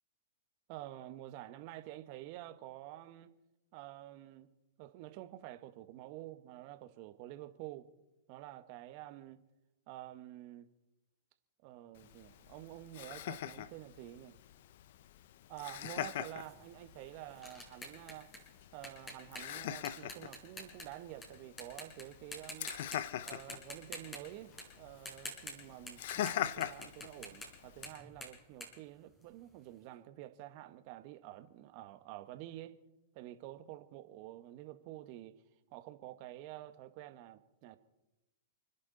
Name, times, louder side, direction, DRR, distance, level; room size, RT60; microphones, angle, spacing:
voice 1, 0.7-3.3 3.7-4.5 4.8-7.9 8.3-9.4 9.9-10.7 11.6-14.4 15.5-18.3 18.7-22.7 23.2-32.8 33.1-35.3 35.7-37.8, right 15 dB, 50° right, 1.5 m, -49 dB
Laughter, 12.0-28.0, left 12 dB, 60° left, 0.7 m, -43 dB
sound 1, 16.4-21.3 21.6-22.0 22.3-23.0 23.3-26.3 26.6-29.6, left 1 dB, 15° left, 5.4 m, -48 dB
29.5 x 11.0 x 4.1 m
hypercardioid pair, 120°, 0 cm